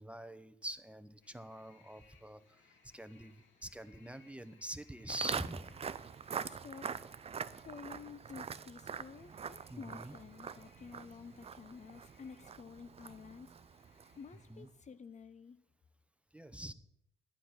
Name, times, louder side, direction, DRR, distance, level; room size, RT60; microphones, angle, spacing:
voice 1, 0.0-2.6 2.9-3.3 3.6-5.8 9.7-10.2 14.5-14.7 16.3-16.7, right 1 dB, 5° right, 11 dB, 0.8 m, -45 dB
sound 1, 1.2-14.7, left 4 dB, 70° left, 2.1 m, -68 dB
Walk footsteps, 5.1-14.3, right 6 dB, 30° right, 0.5 m, -44 dB
voice 2, 6.4-6.9 7.5-13.9 14.2-15.6, left 6 dB, 35° left, 12 dB, 0.7 m, -51 dB
11.5 x 9.0 x 5.9 m, 0.77 s
cardioid pair, 90°, 20 cm